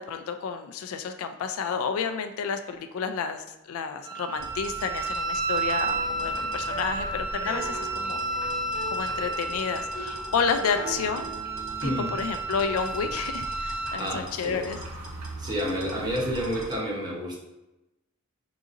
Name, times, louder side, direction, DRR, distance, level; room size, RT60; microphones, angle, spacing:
voice 1, 0.0-8.2 8.9-11.3 11.8-14.8, left 6 dB, 70° left, 8 dB, 0.3 m, -30 dB
Wind instrument woodwind instrument, 4.0-14.0, right 3 dB, 40° right, 1.2 m, -32 dB
sound 1, 4.3-16.8, right 2 dB, 75° right, 0.7 m, -42 dB
sound 2, 5.8-12.8, right 2 dB, 20° left, 0.9 m, -41 dB
voice 2, 11.8-12.2 13.8-14.6 15.4-17.4, equal, 20° right, -3 dB, 0.8 m, -30 dB
4.0 x 3.7 x 2.5 m, 0.96 s
head